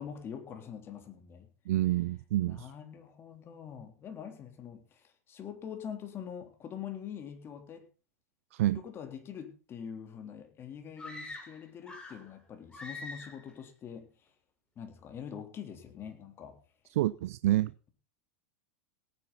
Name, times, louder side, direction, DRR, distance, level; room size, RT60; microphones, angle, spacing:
voice 1, 0.0-1.5 2.4-7.9 8.7-14.1 14.7-16.6, left 8 dB, 30° left, 3.6 m, -44 dB
voice 2, 1.7-2.7 8.5-8.8 16.9-17.7, right 15 dB, 70° right, 0.5 m, -28 dB
sound 1, 11.0-12.3 12.7-13.5, left 2 dB, 10° left, 5.1 m, -44 dB
18.0 x 10.0 x 4.2 m
hypercardioid pair, 115°, 8 cm